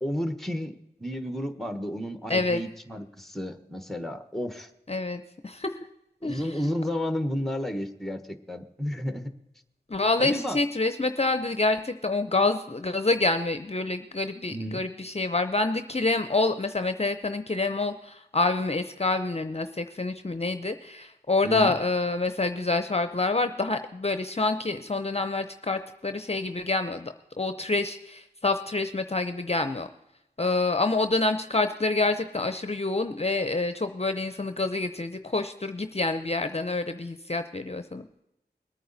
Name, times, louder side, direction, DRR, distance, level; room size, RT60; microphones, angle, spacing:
voice 1, 0.0-4.7 6.2-9.3 10.2-10.6 14.5-14.8 21.4-21.8, equal, ahead, 9 dB, 1.2 m, -32 dB
voice 2, 2.3-2.6 4.9-5.7 6.2-6.4 9.9-29.9 30.4-38.0, left 3 dB, 35° left, 9 dB, 0.7 m, -27 dB
21.0 x 9.3 x 4.1 m, 0.87 s
wide cardioid pair, 55°, 18 cm